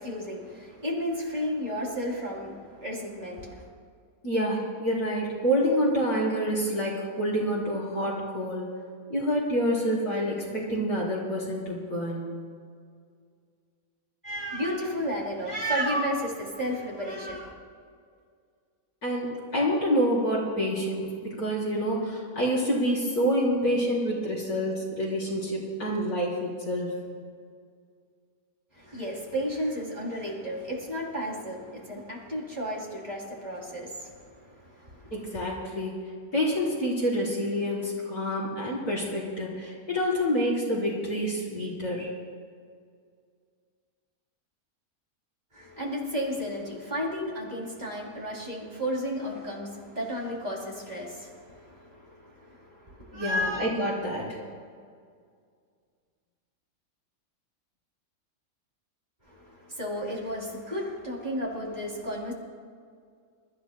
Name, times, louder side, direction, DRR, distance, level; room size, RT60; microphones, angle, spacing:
voice 1, 0.0-3.7 14.2-17.5 28.7-35.1 45.5-53.7 59.3-62.3, equal, 30° right, -3 dB, 3.3 m, -33 dB
voice 2, 4.2-8.7 9.1-12.4 19.0-26.9 35.1-42.1 53.1-54.4, equal, 90° left, -6 dB, 4.9 m, -27 dB
27.5 x 14.0 x 2.3 m, 2.1 s
omnidirectional pair, 1.6 m